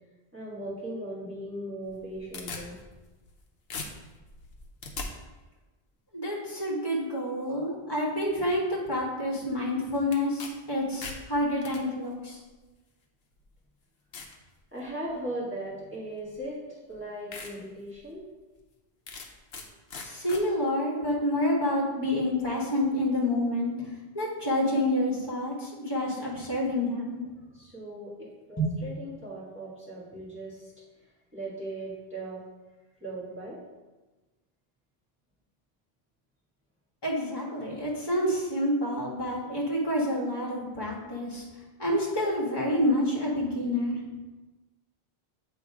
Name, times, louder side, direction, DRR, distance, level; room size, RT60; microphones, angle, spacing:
voice 1, 0.3-2.8 14.7-18.2 27.5-30.7 31.0-32.4 33.0-33.6, right 1 dB, 10° right, -8 dB, 1.7 m, -38 dB
sound 1, 1.9-3.4 3.7-5.1 10.1-10.5 10.8-11.8 12.7-12.8 13.4-13.5 14.1-14.4 14.9-15.2 16.4-16.5 16.9-17.0 17.3-17.5 18.0-18.1 19.1-19.7 19.9-20.4, left 4 dB, 65° left, 1.0 m, -40 dB
voice 2, 6.1-12.4 20.0-23.7 24.1-27.2 28.6-28.8 37.0-41.4 41.8-44.0, left 1 dB, 25° left, -4 dB, 1.5 m, -28 dB
7.8 x 3.1 x 4.7 m, 1.2 s
omnidirectional pair, 1.1 m